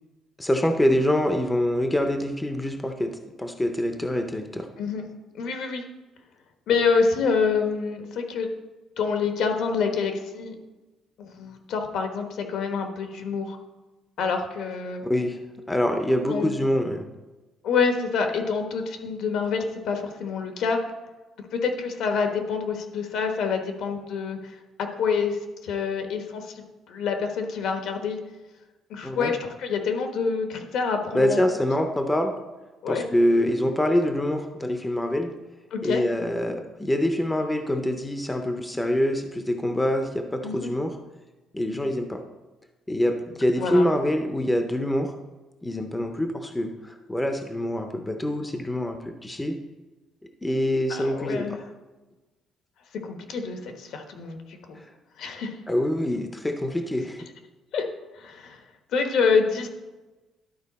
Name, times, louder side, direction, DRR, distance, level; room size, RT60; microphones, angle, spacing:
voice 1, 0.4-4.7 15.0-15.4 15.7-17.1 29.0-29.3 31.1-32.3 32.9-35.3 35.8-41.0 41.5-42.2 42.9-45.1 45.6-49.6 50.4-51.6 54.8-54.9 55.7-57.2, left 1 dB, 10° left, 5 dB, 0.5 m, -25 dB
voice 2, 5.3-5.8 6.7-8.5 9.0-10.5 11.2-13.6 14.2-15.0 16.3-16.5 17.6-20.8 21.5-28.2 28.9-31.4 32.8-33.0 35.7-36.0 40.4-40.7 43.6-43.9 50.9-51.6 53.0-54.8 55.2-55.6 57.7-57.8 58.1-58.6 58.9-59.7, left 5 dB, 70° left, 5 dB, 1.1 m, -27 dB
12.0 x 4.7 x 4.1 m, 1.2 s
cardioid pair, 150°, 0 cm